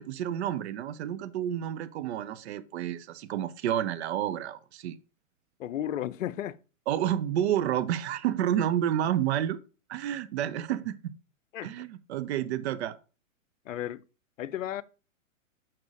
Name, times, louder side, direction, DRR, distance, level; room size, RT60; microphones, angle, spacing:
voice 1, 0.0-5.0 6.9-9.6 9.9-11.1 11.6-13.0, right 11 dB, 50° right, 0.9 m, -30 dB
voice 2, 5.6-6.6 11.5-11.7 13.7-14.0 14.4-14.8, left 11 dB, 70° left, 0.7 m, -33 dB
6.6 x 6.0 x 3.6 m
hypercardioid pair, 135°, 41 cm